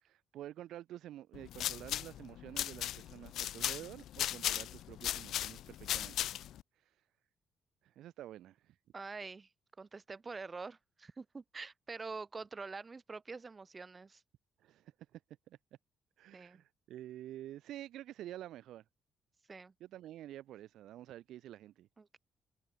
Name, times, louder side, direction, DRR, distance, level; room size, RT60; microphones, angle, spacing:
voice 1, 0.0-6.3 7.8-8.7 14.6-15.2 15.5-15.6 16.2-18.8 19.8-21.9, right 13 dB, 80° right, 2.1 m, -49 dB
sound 1, 1.3-6.6, left 12 dB, 75° left, 0.6 m, -37 dB
voice 2, 8.9-9.5 9.8-14.2 16.3-16.6 19.5-19.7 22.0-22.2, right 4 dB, 30° right, 6.9 m, -46 dB
cardioid pair, 90°, 0 cm